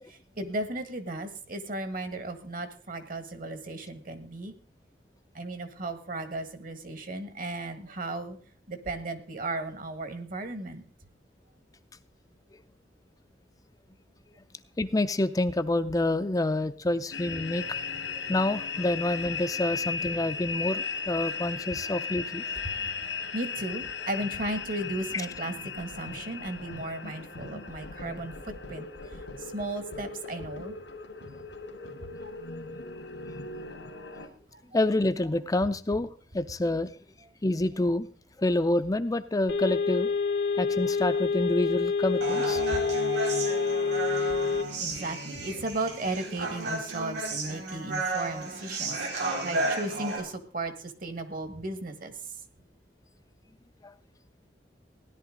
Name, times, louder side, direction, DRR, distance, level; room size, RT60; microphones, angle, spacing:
voice 1, 0.1-4.5 5.3-8.4 8.7-10.8 22.6-22.8 23.3-28.9 29.4-30.8 32.0-32.3 34.5-34.6 42.7-42.8 44.8-52.1, right 2 dB, 50° right, 9 dB, 1.7 m, -35 dB
voice 2, 14.8-17.8 18.3-22.4 34.7-36.9 37.4-38.1 38.4-40.1 40.6-42.6 53.8-53.9, left 1 dB, 20° left, 10 dB, 0.5 m, -27 dB
sound 1, 17.1-34.3, left 5 dB, 85° left, 2.0 m, -37 dB
sound 2, 39.5-44.6, left 5 dB, 70° left, 1.3 m, -27 dB
Human voice, 42.2-50.2, right 2 dB, 85° right, 4.4 m, -33 dB
16.5 x 11.0 x 3.8 m, 0.44 s
head